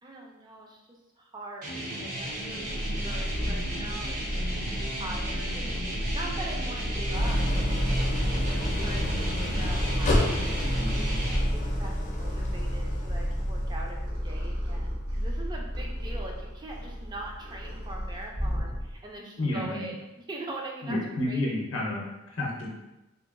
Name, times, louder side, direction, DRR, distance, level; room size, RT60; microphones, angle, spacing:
voice 1, 0.0-10.7 10.9-21.0 21.2-21.5, right 1 dB, 20° right, 0 dB, 0.4 m, -43 dB
sound 1, 1.6-11.4, right 1 dB, 50° right, 0.7 m, -35 dB
Purr, 2.3-19.1, equal, 75° right, 1.0 m, -32 dB
Idling, 7.1-14.2, left 1 dB, 40° left, 0.4 m, -29 dB
voice 2, 19.4-19.9 20.8-22.7, left 1 dB, 90° left, -2 dB, 0.6 m, -30 dB
2.8 x 2.6 x 2.5 m, 0.97 s
head